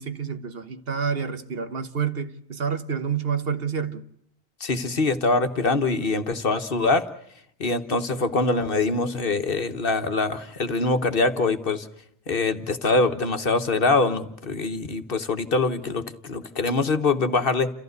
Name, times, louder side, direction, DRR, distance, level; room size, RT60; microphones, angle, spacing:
voice 1, 0.0-4.0, right 6 dB, 60° right, 1.3 m, -28 dB
voice 2, 4.6-7.1 7.6-11.9 12.3-17.7, left 3 dB, 55° left, 1.4 m, -24 dB
29.5 x 15.0 x 8.0 m
omnidirectional pair, 1.2 m